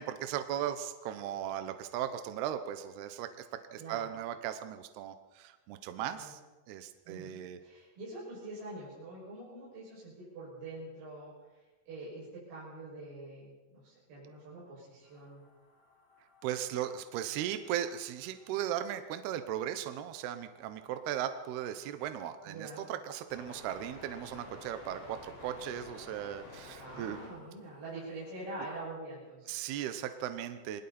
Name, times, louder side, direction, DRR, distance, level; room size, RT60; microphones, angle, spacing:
voice 1, 0.0-3.3 3.7-6.4 6.7-7.6 16.4-27.2 29.5-30.8, right 10 dB, 75° right, 9 dB, 2.6 m, -37 dB
voice 2, 3.8-4.1 6.0-6.3 7.0-7.3 7.6-11.3 11.9-15.4 22.4-22.8 26.8-29.6, right 2 dB, 55° right, -8 dB, 8.5 m, -45 dB
sound 1, 15.0-28.8, left 2 dB, 80° left, 8.0 m, -55 dB
29.0 x 21.0 x 4.3 m, 1.2 s
omnidirectional pair, 5.4 m